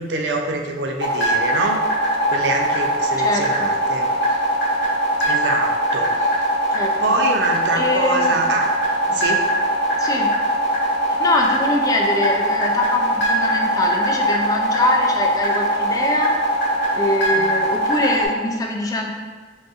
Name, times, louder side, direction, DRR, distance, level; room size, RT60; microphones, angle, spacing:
voice 1, 0.0-1.8 2.3-4.4 5.3-6.5 7.0-8.7 9.1-9.4 17.3-17.5, right 3 dB, 70° right, 2 dB, 0.4 m, -25 dB
sound 1, 1.0-18.3, right 1 dB, 75° left, 1.0 m, -20 dB
voice 2, 3.2-3.7 6.7-7.2 7.7-8.4 10.0-10.3 11.2-16.3 16.9-19.1, left 2 dB, 20° left, 1 dB, 0.3 m, -23 dB
3.9 x 2.5 x 2.4 m, 1.5 s
head